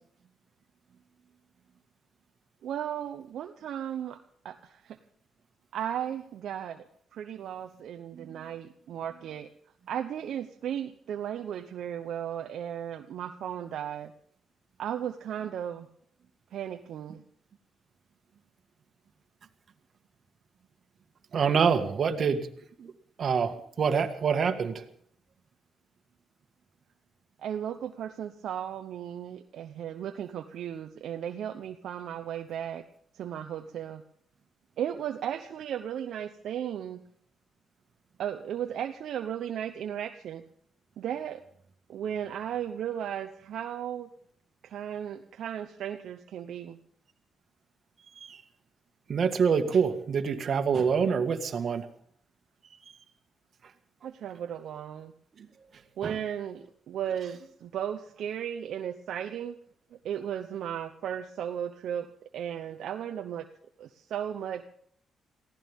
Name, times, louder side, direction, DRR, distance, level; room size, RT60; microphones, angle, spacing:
voice 1, 2.6-4.2 4.4-5.0 5.7-6.8 7.1-9.5 9.9-14.1 14.8-15.9 16.5-17.2 27.4-32.8 33.1-34.0 34.8-37.0 38.2-40.4 41.0-41.4 41.9-44.1 44.6-46.8 54.0-55.1 56.0-59.6 60.0-62.1 62.3-63.5 63.8-64.6, right 9 dB, 75° right, 6 dB, 0.9 m, -35 dB
voice 2, 8.1-8.4 21.3-22.5 22.8-22.9 23.2-24.8 48.2-48.4 49.1-51.9 55.4-55.5 56.0-56.2, right 6 dB, 55° right, 6 dB, 1.9 m, -26 dB
23.0 x 16.0 x 3.7 m, 0.63 s
cardioid pair, 95°, 0 cm